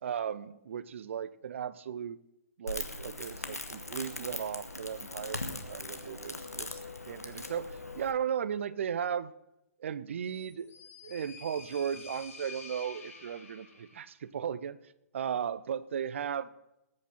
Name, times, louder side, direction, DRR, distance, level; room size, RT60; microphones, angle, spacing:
voice 1, 0.0-2.2 2.6-6.8 7.1-9.3 9.8-10.7 11.0-14.8 15.1-16.5, right 8 dB, 55° right, 17 dB, 0.6 m, -36 dB
Crackle, 2.7-8.1, left 2 dB, 90° left, 1.4 m, -40 dB
sound 1, 10.3-14.1, left 4 dB, 65° left, 3.3 m, -49 dB
19.5 x 8.6 x 4.3 m, 0.89 s
figure-of-eight pair, 125°, 8 cm